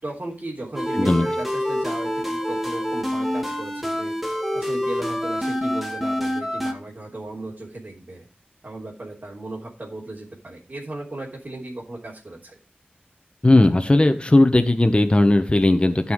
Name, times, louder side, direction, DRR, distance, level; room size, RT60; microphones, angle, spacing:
voice 1, 0.0-4.1 4.5-8.3 8.6-12.6, right 2 dB, 45° right, -4 dB, 3.5 m, -35 dB
sound 1, 0.7-6.7, equal, ahead, 2.1 m, -26 dB
voice 2, 13.4-16.1, left 2 dB, 30° left, 7 dB, 1.4 m, -17 dB
14.5 x 5.7 x 4.9 m, 0.32 s
wide cardioid pair, 75°, 4 cm